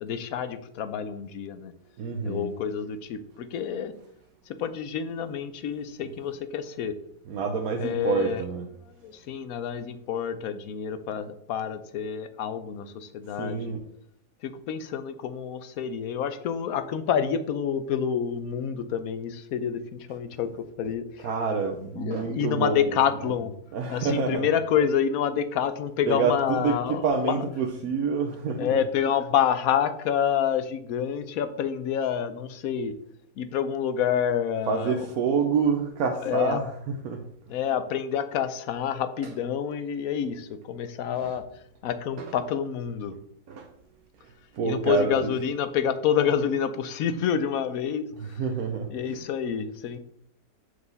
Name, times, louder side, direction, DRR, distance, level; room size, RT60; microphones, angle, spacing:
voice 1, 0.0-1.7 2.2-3.9 4.5-6.9 7.8-8.4 9.0-13.7 14.4-19.8 20.1-21.3 22.0-23.6 23.9-27.4 28.6-33.0 33.4-35.1 36.2-36.6 37.5-41.4 41.8-43.2 44.6-48.1 48.9-50.0, left 8 dB, 70° left, 11 dB, 1.1 m, -28 dB
voice 2, 2.0-2.5 7.3-8.6 13.4-13.8 21.2-22.8 23.7-24.5 26.1-28.7 34.7-36.7 37.0-37.2 41.2-41.3 42.2-42.3 43.5-43.7 44.5-45.3 48.2-49.2, right 5 dB, 70° right, 2 dB, 1.2 m, -27 dB
7.6 x 4.7 x 4.0 m, 0.70 s
omnidirectional pair, 1.7 m